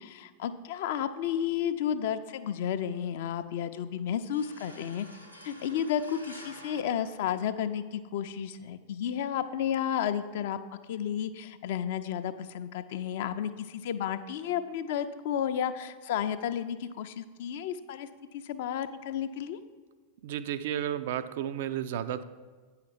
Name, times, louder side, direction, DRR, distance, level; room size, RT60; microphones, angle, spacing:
voice 1, 0.0-5.1 5.4-10.6 10.9-18.1 18.3-19.6, left 9 dB, 55° left, 10 dB, 0.4 m, -32 dB
sound 1, 4.3-7.9, equal, 90° right, 1.1 m, -50 dB
voice 2, 20.2-22.2, right 10 dB, 55° right, 12 dB, 0.4 m, -32 dB
8.8 x 5.7 x 5.6 m, 1.4 s
figure-of-eight pair, 90°, 0 cm